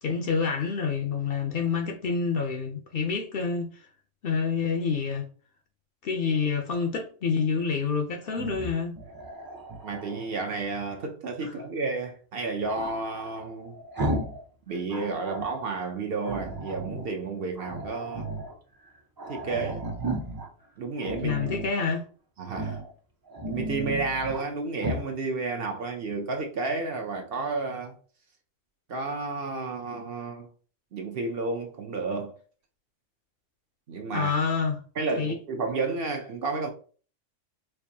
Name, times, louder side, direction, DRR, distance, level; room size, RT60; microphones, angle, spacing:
voice 1, 0.0-3.9 4.2-5.3 6.0-9.0 11.4-11.5 21.2-22.0 34.1-34.8 35.2-35.4, left 5 dB, 60° left, 0.7 m, -28 dB
Growling, 8.3-10.3 12.7-14.4 14.7-15.6 16.2-17.1 17.5-18.5 18.9-19.0 19.2-20.5 21.0-21.8 22.5-22.9 23.2-24.5 24.8-25.1, right 1 dB, 30° right, 0.4 m, -34 dB
voice 2, 9.8-13.8 14.7-18.3 19.3-19.9 20.8-21.5 22.4-22.8 23.5-28.0 28.9-30.5 30.9-32.4 33.9-34.3 35.0-36.7, right 3 dB, 60° right, 0.7 m, -31 dB
4.5 x 2.5 x 2.7 m
omnidirectional pair, 1.3 m